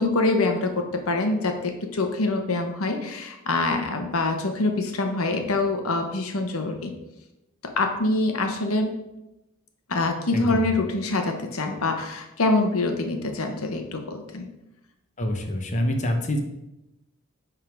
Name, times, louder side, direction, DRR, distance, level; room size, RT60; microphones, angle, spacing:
voice 1, 0.0-6.9 7.8-9.0 9.9-14.5, left 2 dB, 85° left, 5 dB, 1.0 m, -25 dB
voice 2, 15.2-16.4, left 1 dB, 35° left, 3 dB, 0.9 m, -26 dB
9.9 x 3.8 x 4.6 m, 0.93 s
head